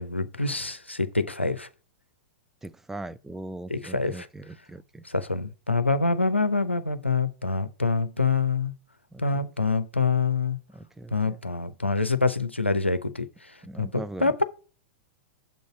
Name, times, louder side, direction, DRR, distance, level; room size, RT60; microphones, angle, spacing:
voice 1, 0.0-1.7 3.7-4.3 5.0-8.7 9.2-10.6 11.1-13.3 13.8-14.4, left 4 dB, 90° left, 0.6 m, -26 dB
voice 2, 2.6-5.0 9.1-9.5 10.7-11.4 13.6-14.4, right 2 dB, 5° right, 0.3 m, -40 dB
7.1 x 3.9 x 5.7 m
figure-of-eight pair, 95°, 6 cm